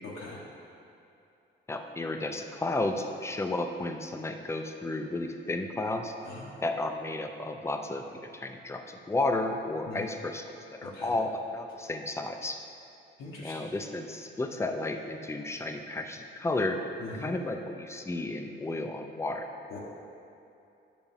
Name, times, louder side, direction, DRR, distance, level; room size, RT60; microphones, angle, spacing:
voice 1, 0.0-0.4 6.2-6.6 9.9-10.1 10.8-11.1 13.2-13.6 17.0-17.3 19.7-19.8, left 2 dB, 80° left, -5 dB, 1.2 m, -41 dB
voice 2, 1.7-6.1 6.6-12.6 13.4-16.8 17.1-19.5, left 2 dB, 15° left, 5 dB, 0.5 m, -33 dB
9.8 x 6.9 x 3.6 m, 2.7 s
cardioid pair, 135°, 20 cm